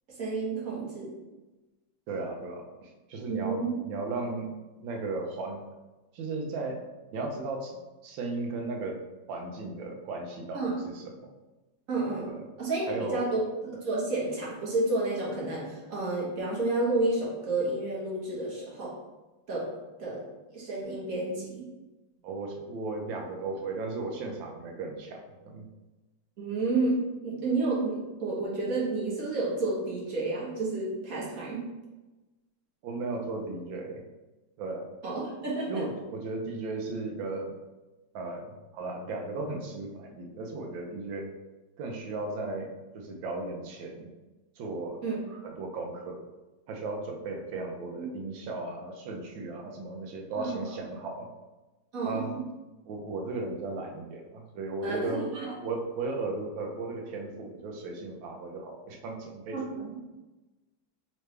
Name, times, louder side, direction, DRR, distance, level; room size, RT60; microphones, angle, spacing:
voice 1, 0.2-1.1 3.3-3.7 10.5-10.7 11.9-12.3 12.6-13.4 13.8-18.9 19.5-19.7 20.0-20.2 20.5-21.6 26.4-31.6 35.0-35.8 45.0-45.4 48.0-48.1 50.3-50.6 51.9-52.4 54.8-55.5 59.5-60.0, right 2 dB, 50° right, -5 dB, 1.4 m, -30 dB
voice 2, 2.1-4.5 4.8-5.6 6.1-6.8 7.1-9.0 9.3-10.6 10.9-11.3 12.3-12.4 12.9-13.3 22.2-25.7 32.8-34.0 34.6-34.9 35.5-37.5 38.1-41.3 41.8-44.1 44.6-45.0 45.4-46.2 46.7-51.3 52.0-52.3 52.9-55.3 55.6-59.6, right 3 dB, 90° right, 2 dB, 1.5 m, -36 dB
3.8 x 3.3 x 3.2 m, 1.1 s
omnidirectional pair, 2.0 m